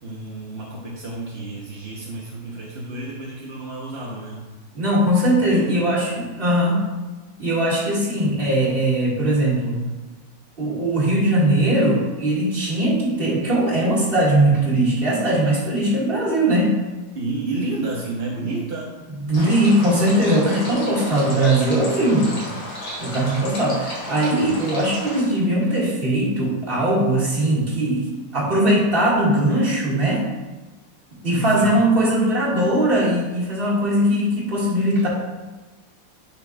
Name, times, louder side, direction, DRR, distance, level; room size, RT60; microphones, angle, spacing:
voice 1, 0.0-4.4 5.5-5.8 17.1-18.9 22.3-22.5 31.5-31.8, right 2 dB, 45° right, -4 dB, 0.9 m, -30 dB
voice 2, 4.7-6.8 7.4-9.9 10.6-16.7 19.3-22.3 23.0-30.3 31.2-35.1, right 1 dB, 25° right, -6 dB, 2.1 m, -20 dB
sound 1, 19.3-25.2, left 1 dB, 80° left, 3.3 m, -33 dB
11.0 x 6.0 x 2.4 m, 1.2 s
omnidirectional pair, 2.2 m